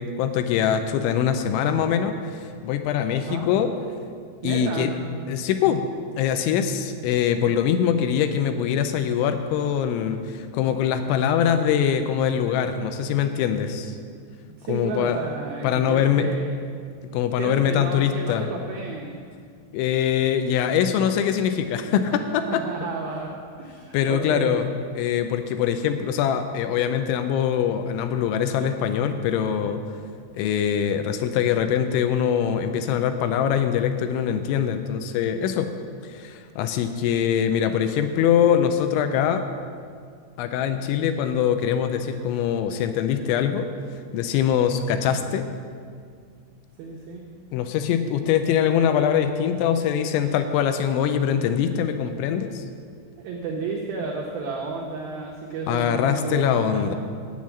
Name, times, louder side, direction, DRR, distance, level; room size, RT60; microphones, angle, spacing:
voice 1, 0.0-3.7 4.4-4.9 5.3-5.8 6.2-14.0 14.7-15.2 15.6-16.3 17.1-18.5 19.7-22.6 23.9-29.8 30.3-35.7 36.1-39.5 40.4-43.7 44.1-45.5 47.5-52.6 55.7-57.0, left 8 dB, 85° left, 8 dB, 2.9 m, -23 dB
voice 2, 4.4-4.9 14.6-16.5 17.4-19.2 22.1-24.5 46.8-47.3 53.2-56.9, right 4 dB, 80° right, -2 dB, 2.1 m, -32 dB
8.9 x 8.3 x 7.1 m, 2.1 s
omnidirectional pair, 5.6 m